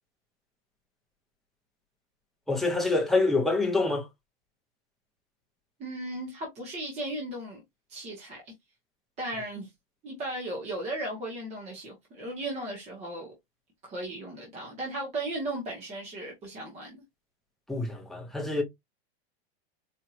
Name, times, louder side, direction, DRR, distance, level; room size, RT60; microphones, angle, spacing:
voice 1, 2.5-4.0 17.7-18.6, left 3 dB, ahead, 0.5 m, -26 dB
voice 2, 5.8-7.6 7.9-8.5 9.2-9.7 10.0-13.3 13.8-17.0, right 1 dB, 20° right, 1.1 m, -36 dB
4.3 x 2.7 x 2.4 m
supercardioid pair, 160°, 31 cm